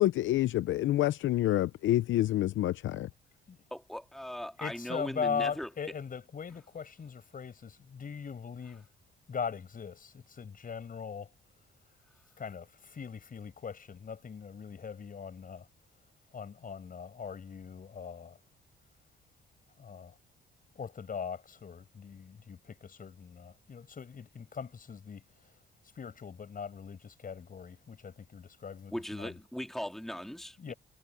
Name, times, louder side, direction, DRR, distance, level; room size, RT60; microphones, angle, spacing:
voice 1, 0.0-3.1, left 14 dB, 75° left, 0.7 m, -27 dB
voice 2, 3.7-5.7 28.9-30.7, equal, ahead, 2.1 m, -39 dB
voice 3, 4.6-8.9 9.3-11.3 12.4-15.7 16.3-18.4 19.8-20.2 20.8-25.2 26.0-29.3 30.6-30.7, left 6 dB, 45° left, 6.9 m, -40 dB
cardioid pair, 90°, 20 cm